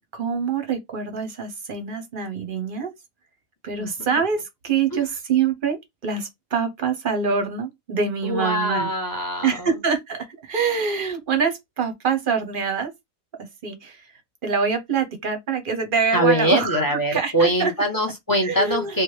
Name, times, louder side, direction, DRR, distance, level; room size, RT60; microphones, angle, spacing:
voice 1, 0.0-2.9 3.6-8.9 9.4-12.9 13.6-14.1 14.4-17.7 18.4-19.0, right 6 dB, 45° right, 0.8 m, -25 dB
voice 2, 8.2-9.7 16.1-19.0, equal, 25° left, 0.5 m, -22 dB
3.2 x 2.1 x 3.2 m
omnidirectional pair, 1.4 m